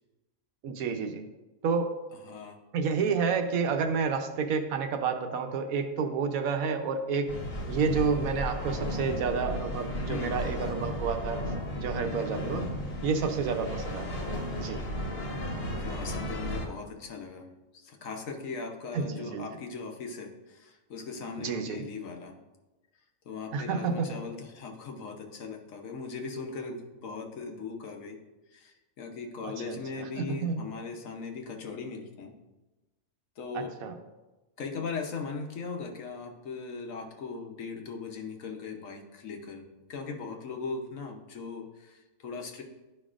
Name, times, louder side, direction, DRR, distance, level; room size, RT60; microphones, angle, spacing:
voice 1, 0.6-1.2 1.6-2.0 2.7-7.3 7.7-11.4 11.7-12.7 13.0-14.3 14.6-14.8 18.9-19.4 21.4-21.8 23.5-24.1 29.4-30.6 33.5-33.9, right 5 dB, 75° right, 6 dB, 1.1 m, -30 dB
voice 2, 2.1-2.6 10.1-10.5 15.7-17.5 17.7-22.3 23.2-28.2 28.5-32.4 33.4-33.8 34.6-39.6 39.9-42.6, left 4 dB, 65° left, 2 dB, 1.2 m, -39 dB
sound 1, 7.3-16.7, left 1 dB, 45° left, 1.3 m, -34 dB
12.0 x 5.3 x 2.5 m, 1.1 s
omnidirectional pair, 1.5 m